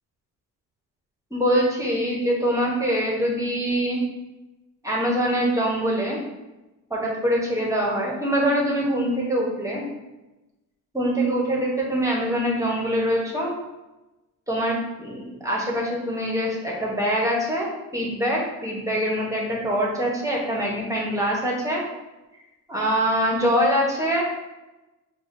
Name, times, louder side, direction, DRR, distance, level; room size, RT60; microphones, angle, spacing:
voice 1, 1.3-4.0 4.8-6.2 6.9-9.8 10.9-13.5 14.5-21.8 22.7-24.2, equal, 10° right, -3 dB, 0.9 m, -24 dB
6.8 x 2.3 x 2.6 m, 1.0 s
cardioid pair, 130°, 34 cm